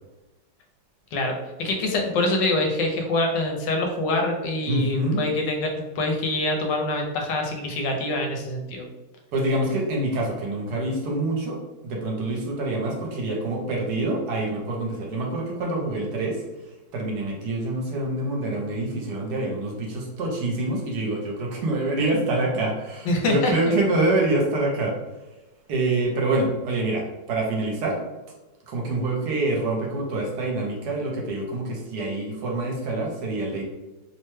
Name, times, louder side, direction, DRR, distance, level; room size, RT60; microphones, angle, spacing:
voice 1, 1.1-8.9 23.0-23.7, left 2 dB, 85° left, 2 dB, 1.3 m, -25 dB
voice 2, 4.7-5.2 9.3-11.6 11.8-16.4 16.9-24.9 25.7-28.0 28.7-33.6, right 2 dB, 70° right, 0 dB, 1.1 m, -26 dB
3.0 x 2.1 x 3.1 m, 1.0 s
omnidirectional pair, 1.9 m